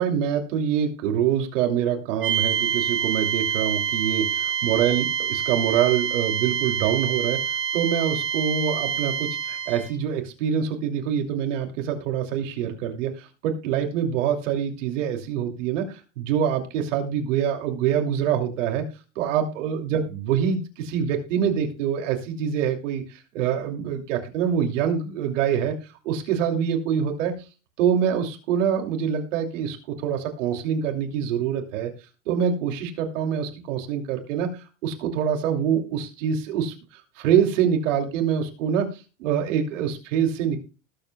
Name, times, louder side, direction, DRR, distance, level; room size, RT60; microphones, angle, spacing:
voice 1, 0.0-18.8 19.2-25.7 26.0-27.3 27.8-31.9 32.3-34.5 34.8-38.9 39.2-40.6, right 8 dB, 90° right, 4 dB, 2.8 m, -25 dB
sound 1, 2.2-9.9, right 8 dB, 35° right, 3.6 m, -26 dB
19.5 x 7.8 x 2.2 m, 0.32 s
supercardioid pair, 135°, 36 cm